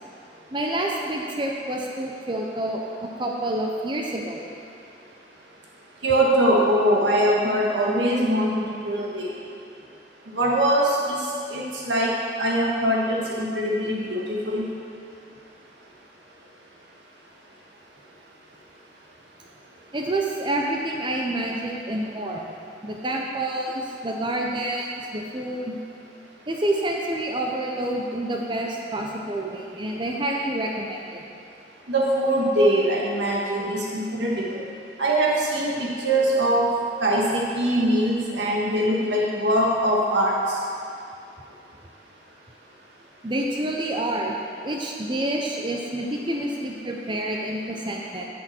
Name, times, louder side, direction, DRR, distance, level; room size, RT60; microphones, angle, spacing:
voice 1, 0.5-4.4 8.3-8.4 19.9-22.5 22.8-25.8 26.5-31.2 32.5-32.7 43.2-44.4 44.6-48.3, right 1 dB, 25° right, 0 dB, 0.7 m, -28 dB
voice 2, 6.0-8.5 8.8-9.3 10.3-11.2 11.5-12.1 12.4-14.6 31.9-34.6 35.0-35.7 36.0-36.7 37.0-40.4, right 1 dB, 80° right, -3 dB, 1.8 m, -22 dB
11.0 x 6.4 x 4.4 m, 2.6 s
head